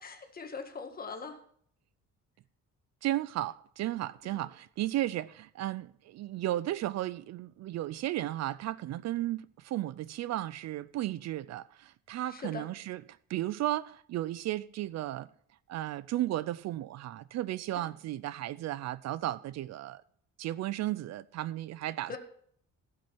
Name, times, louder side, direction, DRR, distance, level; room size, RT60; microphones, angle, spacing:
voice 1, 0.0-1.4 4.2-4.5 12.3-12.7 22.1-22.2, left 5 dB, 30° left, 1.8 m, -41 dB
voice 2, 3.0-13.0 13.3-15.3 15.7-20.0 20.4-22.2, right 14 dB, 60° right, 0.5 m, -34 dB
17.0 x 6.3 x 5.8 m
cardioid pair, 155°, 30 cm